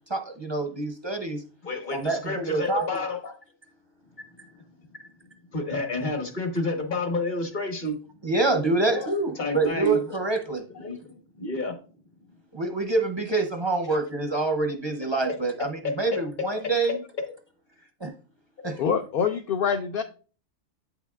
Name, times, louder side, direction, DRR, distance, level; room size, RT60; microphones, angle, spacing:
voice 1, 0.1-1.4 1.9-2.9 8.2-10.6 12.5-17.0 18.0-18.1 18.6-18.8, right 3 dB, 35° right, 4 dB, 0.5 m, -26 dB
voice 2, 1.6-3.3 5.5-8.0 8.9-9.1 9.4-10.0 10.7-11.7 16.1-16.2 16.5-16.6, left 2 dB, 45° left, 4 dB, 1.3 m, -30 dB
voice 3, 18.8-20.0, left 7 dB, 60° left, 7 dB, 0.6 m, -25 dB
8.2 x 5.7 x 2.3 m, 0.38 s
omnidirectional pair, 1.2 m